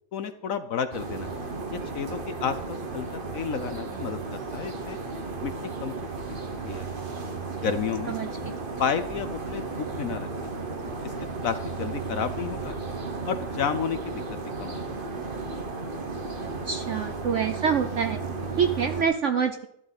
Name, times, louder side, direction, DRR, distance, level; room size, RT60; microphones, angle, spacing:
voice 1, 0.1-1.3 1.7-5.0 5.4-5.5 5.8-5.9 6.6-6.9 7.6-8.1 8.8-10.5 11.0-11.1 11.4-12.7 13.3-14.8, left 7 dB, 60° left, 11 dB, 1.0 m, -31 dB
sound 1, 0.9-19.0, right 3 dB, 35° right, 1.2 m, -34 dB
voice 2, 16.7-18.2 18.6-19.7, right 7 dB, 60° right, 7 dB, 0.8 m, -26 dB
13.0 x 11.0 x 4.1 m, 0.77 s
omnidirectional pair, 1.9 m